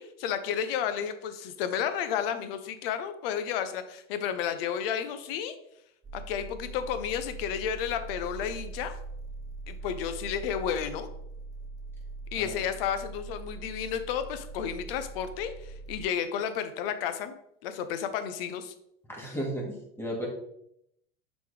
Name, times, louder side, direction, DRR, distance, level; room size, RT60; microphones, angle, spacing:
voice 1, 0.0-5.6 6.1-9.0 9.7-11.1 12.3-17.4 17.6-18.7, left 8 dB, 70° left, 10 dB, 0.8 m, -32 dB
sound 1, 6.0-16.1, right 3 dB, 15° right, 0.4 m, -42 dB
voice 2, 19.1-20.3, right 1 dB, 10° left, -2 dB, 2.1 m, -34 dB
6.7 x 4.2 x 3.3 m, 0.77 s
supercardioid pair, 100°, 30 cm